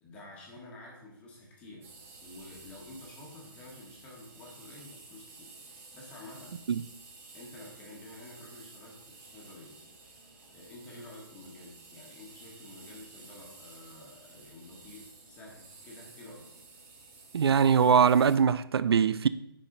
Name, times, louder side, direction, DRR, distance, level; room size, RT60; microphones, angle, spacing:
voice 1, 0.0-1.9 2.2-6.6 7.3-9.8 10.5-16.5, left 2 dB, 10° left, 1.3 m, -50 dB
sound 1, 1.8-18.4, right 3 dB, 35° right, 2.3 m, -52 dB
voice 2, 17.3-19.3, right 7 dB, 85° right, 0.4 m, -22 dB
9.9 x 4.2 x 3.8 m
hypercardioid pair, 170°, 13 cm